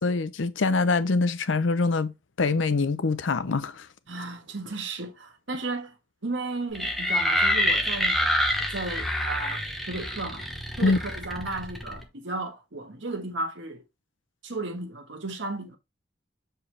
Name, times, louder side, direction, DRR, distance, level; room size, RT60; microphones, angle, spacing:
voice 1, 0.0-2.1 2.4-3.9 10.8-11.0, left 3 dB, 80° left, 0.6 m, -24 dB
voice 2, 4.1-5.9 6.2-9.6 9.9-10.5 10.8-13.8 14.4-15.8, right 2 dB, 70° right, 1.5 m, -34 dB
sound 1, 6.7-12.0, left 1 dB, ahead, 1.0 m, -27 dB
7.2 x 4.6 x 3.2 m
head